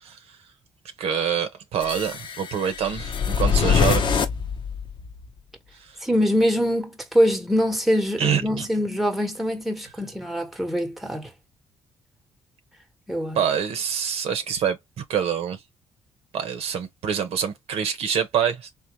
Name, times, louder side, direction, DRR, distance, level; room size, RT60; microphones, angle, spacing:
voice 1, 1.0-4.1 8.2-8.7 13.3-15.6 16.3-18.7, right 8 dB, 75° right, 0.9 m, -26 dB
sound 1, 1.8-5.3, left 6 dB, 50° left, 0.8 m, -24 dB
voice 2, 6.0-11.3 13.1-13.4, equal, ahead, 1.1 m, -23 dB
3.8 x 2.4 x 2.9 m
cardioid pair, 105°, 11 cm